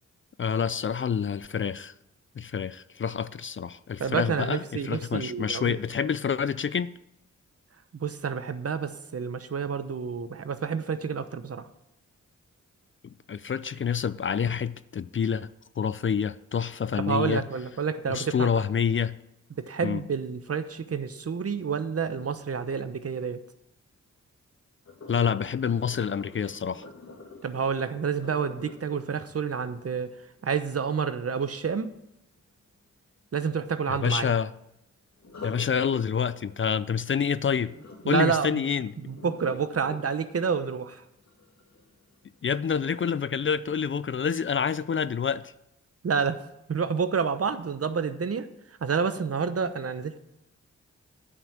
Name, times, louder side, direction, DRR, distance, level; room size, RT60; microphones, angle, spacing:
voice 1, 0.4-1.9 2.4-7.0 13.3-15.5 15.8-17.4 18.1-19.1 19.8-20.0 25.1-26.9 33.9-34.5 35.4-37.7 38.1-38.9 42.4-45.5, left 7 dB, 40° left, 16 dB, 0.5 m, -27 dB
voice 2, 4.0-5.8 7.9-11.7 16.9-18.5 19.6-23.4 27.4-30.2 30.4-31.9 33.3-34.3 38.0-38.6 39.0-41.0 46.0-46.4 46.7-50.2, right 6 dB, 50° right, 11 dB, 0.9 m, -29 dB
Sink (filling or washing), 24.9-30.8 35.2-42.2 42.7-43.1 43.6-43.7, left 3 dB, 65° left, 2.4 m, -47 dB
9.5 x 5.8 x 8.4 m, 0.84 s
cardioid pair, 50°, 30 cm